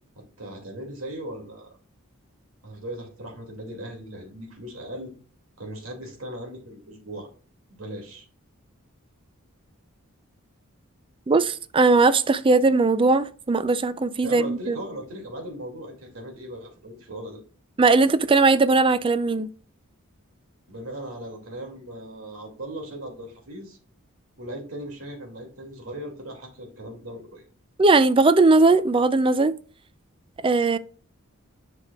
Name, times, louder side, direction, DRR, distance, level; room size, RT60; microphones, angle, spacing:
voice 1, 0.2-1.7 2.6-5.1 5.6-7.3 7.7-8.3 14.2-17.4 20.7-23.8 24.4-27.4, right 1 dB, 80° right, 2.4 m, -38 dB
voice 2, 11.3-14.8 17.8-19.5 27.8-29.5 30.4-30.8, right 3 dB, 25° right, 0.4 m, -19 dB
8.0 x 6.0 x 2.3 m
head